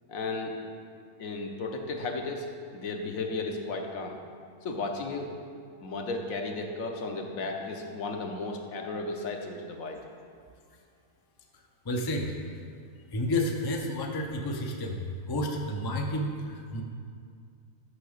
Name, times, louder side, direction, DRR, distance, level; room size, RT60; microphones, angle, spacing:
voice 1, 0.1-0.5 1.2-4.2 4.6-5.3 5.8-10.0, left 3 dB, 65° left, 2 dB, 1.2 m, -34 dB
voice 2, 11.8-12.4 13.1-16.8, left 1 dB, 30° left, 1 dB, 0.4 m, -31 dB
6.7 x 6.2 x 6.4 m, 2.2 s
omnidirectional pair, 1.6 m